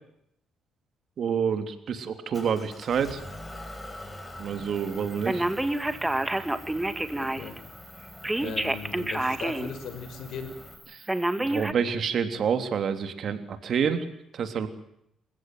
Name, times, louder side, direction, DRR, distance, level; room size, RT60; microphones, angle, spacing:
voice 1, 1.2-3.2 4.4-5.4 8.4-8.5 10.9-11.1 11.4-14.0 14.3-14.7, right 7 dB, 60° right, 9 dB, 3.3 m, -28 dB
Motor vehicle (road) / Engine, 2.3-10.7, left 1 dB, 15° left, 6.5 m, -44 dB
Telephone, 5.3-7.6 8.2-9.7 10.1-10.2 11.1-11.7, right 1 dB, 10° right, 2.0 m, -28 dB
voice 2, 7.1-7.6 8.4-10.5, left 6 dB, 75° left, 9 dB, 6.1 m, -38 dB
28.0 x 16.0 x 9.4 m, 0.77 s
cardioid pair, 85°, 0 cm